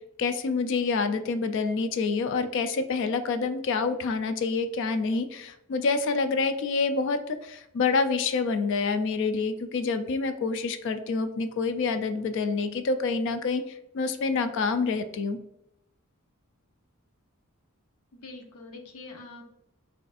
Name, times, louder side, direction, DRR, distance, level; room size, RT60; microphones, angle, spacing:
voice 1, 0.2-15.4, left 4 dB, 55° left, 9 dB, 0.3 m, -27 dB
voice 2, 18.1-19.4, left 3 dB, 80° left, 3 dB, 0.8 m, -44 dB
5.8 x 2.5 x 2.3 m, 0.86 s
head